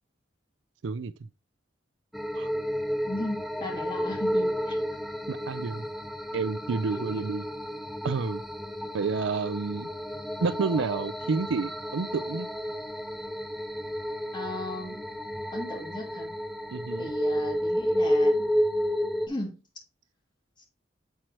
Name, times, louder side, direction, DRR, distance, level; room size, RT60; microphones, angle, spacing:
sound 1, 2.1-19.3, equal, ahead, 0.3 m, -31 dB
voice 1, 3.1-4.8 6.9-7.2 14.3-15.0 15.5-16.3 17.0-18.5 19.3-19.6 20.6-20.7, left 1 dB, 25° left, 2.3 m, -36 dB
voice 2, 5.3-5.9 6.3-7.4 8.0-8.4 8.9-9.9 10.4-12.5 16.7-17.1, right 4 dB, 75° right, 0.4 m, -29 dB
7.4 x 4.6 x 2.9 m
head